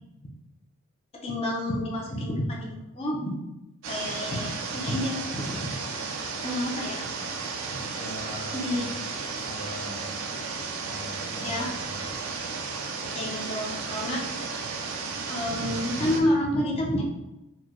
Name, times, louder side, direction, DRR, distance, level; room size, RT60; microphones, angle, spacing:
voice 1, 1.2-3.3 3.9-5.8 6.4-7.1 7.7-7.8 8.5-8.8 11.4-11.7 13.1-14.5 15.3-17.0, left 1 dB, 25° left, -2 dB, 0.6 m, -29 dB
sound 1, 3.8-16.2, right 4 dB, 70° right, 0.5 m, -34 dB
voice 2, 8.0-8.9 9.3-10.1 10.9-12.1, left 1 dB, 45° left, -11 dB, 1.0 m, -41 dB
4.2 x 2.2 x 3.0 m, 0.96 s
head